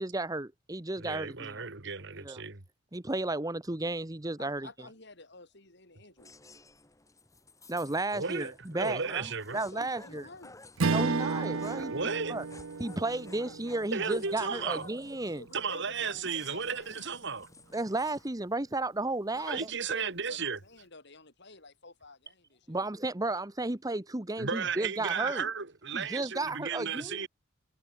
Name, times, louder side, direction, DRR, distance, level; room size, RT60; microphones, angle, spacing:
voice 1, 0.0-1.7 2.2-2.4 2.9-4.7 7.7-9.3 9.5-10.2 10.9-11.9 12.3-12.4 12.8-15.4 17.7-19.7 22.7-25.5 25.9-27.3, right 2 dB, 20° right, 1.1 m, -33 dB
voice 2, 1.0-2.6 8.1-9.6 11.8-12.4 13.9-14.9 15.5-17.5 19.5-20.6 24.4-27.3, right 5 dB, 60° right, 2.2 m, -34 dB
voice 3, 4.4-6.3 9.7-10.5 15.3-16.9 19.3-22.8, left 3 dB, 55° left, 7.1 m, -51 dB
sound 1, 6.2-18.3, left 3 dB, 15° left, 5.6 m, -54 dB
Strum, 10.8-15.4, right 4 dB, 80° right, 0.8 m, -33 dB
head